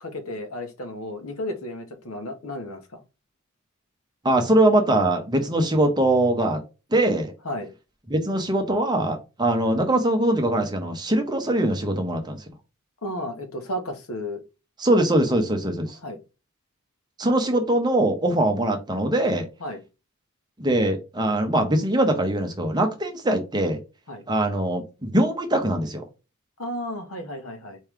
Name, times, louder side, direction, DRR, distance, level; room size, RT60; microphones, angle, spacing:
voice 1, 0.0-3.0 7.4-7.7 13.0-14.4 16.0-16.2 19.6-19.8 24.1-24.2 26.6-27.8, left 1 dB, 90° left, 1.1 m, -33 dB
voice 2, 4.2-6.6 6.9-7.3 8.1-12.4 14.8-16.0 17.2-19.5 20.6-23.8 24.3-26.0, right 1 dB, 20° right, 1.0 m, -22 dB
4.6 x 3.1 x 3.6 m
head